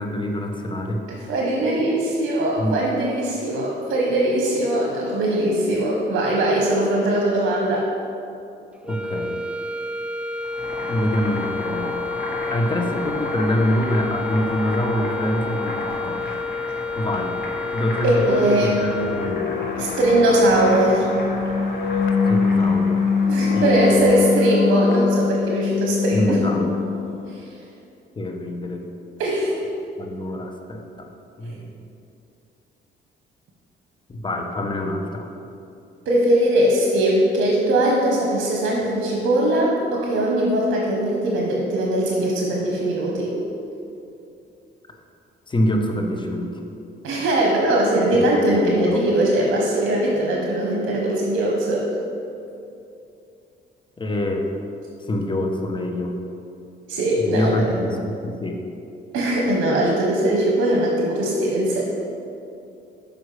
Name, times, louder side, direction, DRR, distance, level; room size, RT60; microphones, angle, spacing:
voice 1, 0.0-1.0 2.6-2.8 8.8-9.4 10.8-12.0 12.5-16.4 17.0-17.4 17.7-19.5 22.2-23.3 23.5-24.2 26.1-26.8 28.2-28.8 30.0-30.8 31.4-31.8 34.1-35.3 45.5-46.6 48.1-48.2 48.5-49.1 54.0-54.5 55.0-56.2 57.2-58.6, left 1 dB, 25° left, 2 dB, 0.9 m, -25 dB
voice 2, 1.1-7.8 18.0-18.8 19.7-21.1 23.3-26.4 27.3-27.4 29.2-29.5 31.4-31.5 36.1-43.3 47.0-51.9 56.9-57.7 59.1-61.8, right 1 dB, 75° right, -2 dB, 1.0 m, -20 dB
sound 1, 8.8-19.7, left 3 dB, 5° right, 0.3 m, -30 dB
Boiling, 10.4-24.2, left 1 dB, 50° left, 1.6 m, -34 dB
sound 2, 18.5-27.3, left 5 dB, 75° left, 0.6 m, -23 dB
6.5 x 5.2 x 4.8 m, 2.7 s
cardioid pair, 90°, 20 cm